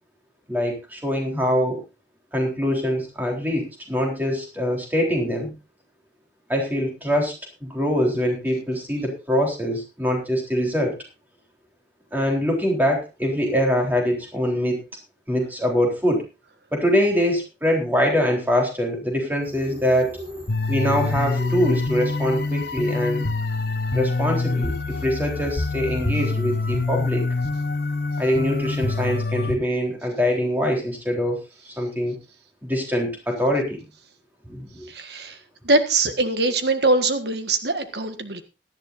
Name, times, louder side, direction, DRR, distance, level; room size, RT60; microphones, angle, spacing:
voice 1, 0.5-1.8 2.3-5.5 6.5-7.3 7.6-11.0 12.1-14.8 15.3-16.3 16.7-20.2 20.7-23.3 23.9-27.3 28.2-31.4 31.6-32.2 32.6-33.8 34.5-34.9, equal, 10° right, 0 dB, 3.8 m, -23 dB
sound 1, 19.4-29.2, equal, 40° right, 7.4 m, -43 dB
sound 2, 20.5-29.6, left 3 dB, 60° left, 1.1 m, -25 dB
voice 2, 34.9-35.4 35.6-38.4, right 2 dB, 65° right, 8 dB, 1.6 m, -22 dB
18.0 x 12.5 x 2.6 m, 0.28 s
head